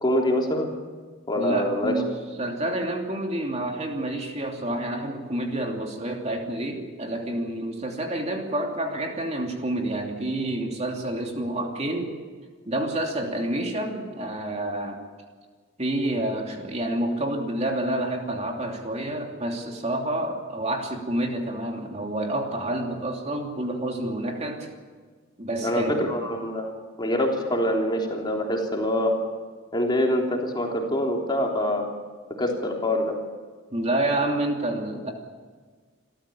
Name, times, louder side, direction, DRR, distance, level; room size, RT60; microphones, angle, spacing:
voice 1, 0.0-0.7 1.3-2.0 25.6-26.7 27.0-29.2 29.7-31.9 32.4-33.1, left 1 dB, 25° left, 0 dB, 3.4 m, -25 dB
voice 2, 1.3-2.1 2.4-12.1 12.6-15.0 15.8-24.7 25.4-26.1 33.7-35.1, right 1 dB, 35° right, 2 dB, 2.9 m, -28 dB
27.5 x 14.0 x 8.6 m, 1.5 s
head